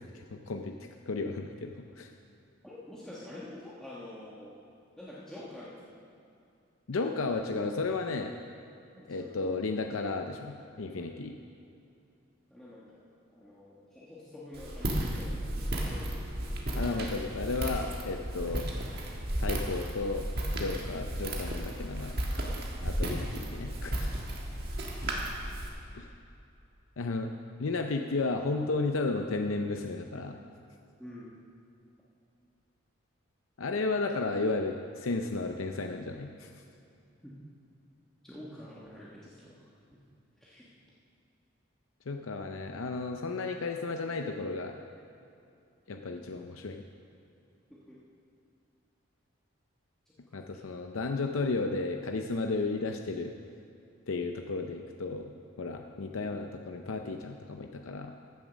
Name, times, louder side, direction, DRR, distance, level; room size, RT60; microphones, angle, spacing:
voice 1, 0.0-2.1 6.9-8.3 9.1-11.3 16.7-18.7 19.4-20.3 20.5-22.2 22.8-24.2 25.9-26.1 27.0-27.3 27.6-30.4 33.6-36.5 42.1-44.8 45.9-46.8 50.3-53.3 54.1-55.3 55.6-58.1, left 3 dB, 85° left, 4 dB, 0.6 m, -33 dB
voice 2, 2.6-4.5 5.0-6.0 8.9-9.3 12.5-13.0 13.3-16.2 31.0-31.3 38.2-39.6 40.4-40.7 47.7-48.0, left 1 dB, 5° left, -9 dB, 1.4 m, -47 dB
Walk footsteps, 14.5-25.7, right 1 dB, 50° right, 1.6 m, -34 dB
15.0 x 7.4 x 6.2 m, 2.6 s
head